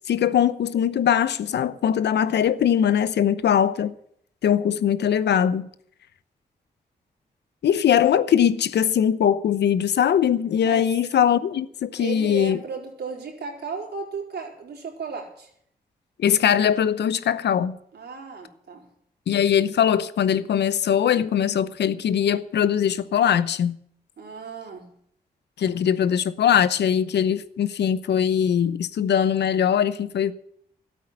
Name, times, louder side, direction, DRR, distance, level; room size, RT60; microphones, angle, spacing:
voice 1, 0.1-3.9 4.4-5.7 7.6-12.6 16.2-17.7 19.3-23.8 25.6-30.3, left 9 dB, 80° left, 0.8 m, -21 dB
voice 2, 12.0-15.5 17.9-18.9 24.2-24.9, right 5 dB, 75° right, 4.3 m, -35 dB
13.0 x 8.5 x 9.8 m
cardioid pair, 50°, 17 cm